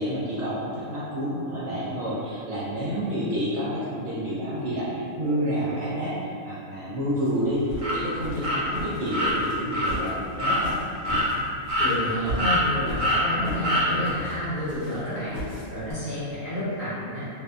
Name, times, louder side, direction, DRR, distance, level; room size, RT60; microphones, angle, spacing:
voice 1, 0.0-10.8, equal, 65° right, -9 dB, 0.7 m, -29 dB
sound 1, 7.3-15.9, equal, 70° left, 1.1 m, -36 dB
sound 2, 7.8-7.9 8.4-8.6 9.1-9.3 9.7-9.9 10.4-10.6 11.0-11.3 11.7-12.1 12.4-12.6 13.0-13.2 13.6-13.9, equal, 90° right, 0.4 m, -24 dB
voice 2, 11.8-15.4 15.7-17.2, equal, 50° left, -13 dB, 1.0 m, -30 dB
2.5 x 2.3 x 2.3 m, 2.5 s
omnidirectional pair, 1.5 m